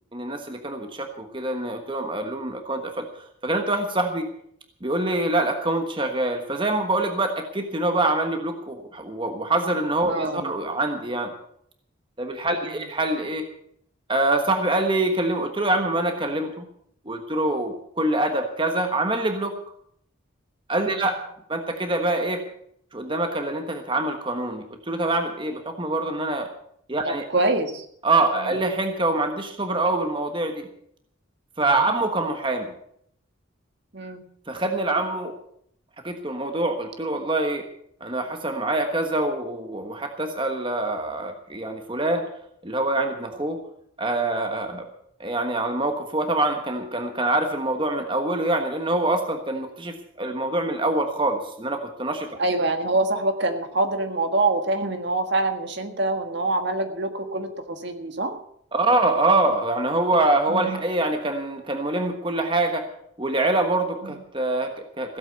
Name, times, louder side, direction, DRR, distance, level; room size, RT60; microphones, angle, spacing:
voice 1, 0.1-3.1 3.4-4.3 4.8-11.3 12.2-13.4 14.1-16.7 17.1-19.5 20.7-21.2 21.5-22.4 22.9-26.5 26.9-27.2 28.0-30.7 31.6-32.7 34.5-35.3 36.0-37.7 38.0-42.2 42.6-43.6 44.0-44.8 45.2-52.3 58.7-62.9 63.2-65.2, right 2 dB, 25° right, 5 dB, 1.3 m, -25 dB
voice 2, 10.1-10.5 12.5-12.8 20.9-21.1 27.1-27.8 28.4-28.6 33.9-34.2 52.4-58.4 60.5-60.8 64.0-64.2, right 2 dB, 55° right, 7 dB, 1.6 m, -25 dB
16.0 x 8.3 x 7.9 m, 0.70 s
head